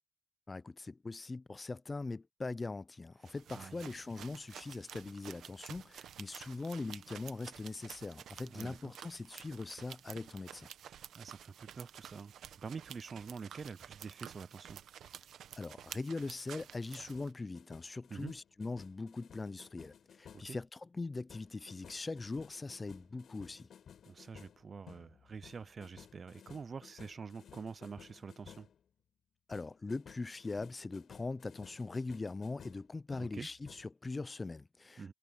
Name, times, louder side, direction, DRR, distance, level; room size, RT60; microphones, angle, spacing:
voice 1, 0.5-10.7 15.6-23.7 29.5-35.1, left 3 dB, 25° left, 0.4 m, -41 dB
voice 2, 3.2-3.8 8.5-8.9 11.1-14.8 18.1-18.3 20.3-20.6 24.1-28.7 33.2-33.5 35.0-35.1, right 5 dB, 40° right, 0.5 m, -46 dB
sound 1, 3.3-17.3, right 9 dB, 85° right, 0.9 m, -51 dB
sound 2, 17.1-20.6 21.3-28.8 29.5-33.9, left 8 dB, 65° left, 4.1 m, -57 dB
cardioid pair, 125°, 0 cm